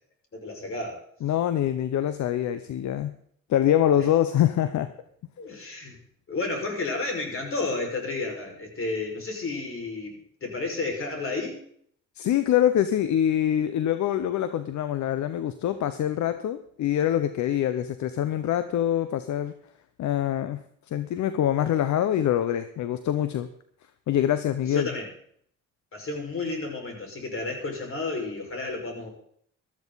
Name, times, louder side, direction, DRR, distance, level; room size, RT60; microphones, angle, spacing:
voice 1, 0.3-1.0 5.4-6.0 6.3-11.6 24.7-25.1 25.9-29.1, left 3 dB, 45° left, 1 dB, 5.5 m, -31 dB
voice 2, 1.2-3.1 3.5-4.9 12.2-19.5 20.0-20.6 20.9-23.5 24.1-24.9, left 11 dB, 70° left, 12 dB, 0.9 m, -24 dB
15.0 x 13.5 x 4.1 m, 0.64 s
cardioid pair, 90°, 30 cm